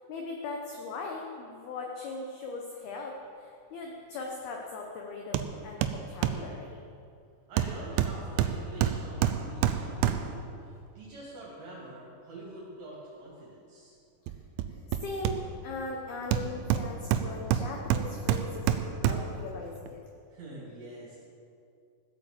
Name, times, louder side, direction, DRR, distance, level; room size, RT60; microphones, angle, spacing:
voice 1, 0.1-6.8 14.3-14.4 14.7-20.0, left 3 dB, 75° left, 0 dB, 2.3 m, -39 dB
Hammer, 5.3-5.5 5.8-6.5 7.6-10.5 14.3-15.7 16.3-19.4 19.9-20.0, right 10 dB, 80° right, 2.8 m, -28 dB
voice 2, 7.5-14.0 20.3-21.2, right 2 dB, 55° right, -7 dB, 4.8 m, -45 dB
16.0 x 8.4 x 7.7 m, 2.5 s
omnidirectional pair, 5.9 m